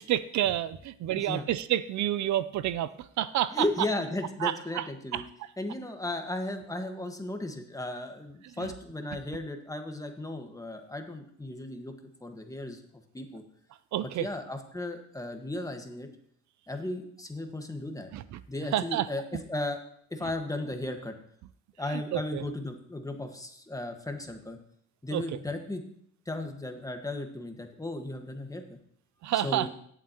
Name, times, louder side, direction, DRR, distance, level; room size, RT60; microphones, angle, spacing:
voice 1, 0.0-3.7 4.4-4.9 5.1-5.5 8.5-8.7 13.9-14.3 18.1-18.4 18.7-19.1 21.9-22.4 25.1-25.4 29.2-29.7, right 12 dB, 70° right, 16 dB, 0.5 m, -29 dB
voice 2, 3.5-5.2 5.6-11.9 12.2-12.8 13.1-13.4 14.0-16.1 16.7-18.1 18.5-19.2 19.5-19.8 20.1-21.1 21.8-24.6 25.0-25.8 26.3-28.8 29.4-29.7, left 2 dB, 10° left, 5 dB, 1.5 m, -35 dB
17.0 x 7.5 x 2.9 m, 0.65 s
cardioid pair, 90°, 30 cm